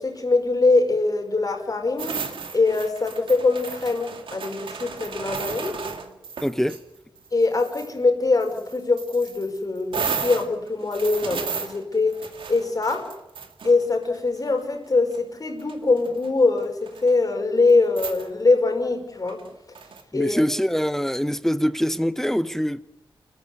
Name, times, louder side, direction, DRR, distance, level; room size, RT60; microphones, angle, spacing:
voice 1, 0.0-2.2 2.5-5.8 7.3-12.2 12.5-13.1 13.6-19.4 20.1-20.4, left 3 dB, 45° left, 5.5 m, -22 dB
sound 1, 2.0-6.8 7.2-7.9 8.4-14.2 15.1-15.2 15.6-16.3 16.6-17.1 17.7-17.8 18.0-18.3 19.3-20.0, right 5 dB, 85° right, 2.5 m, -34 dB
voice 2, 6.4-6.8 20.1-22.8, equal, 5° left, 0.8 m, -24 dB
29.5 x 14.5 x 9.5 m
wide cardioid pair, 75°, 9 cm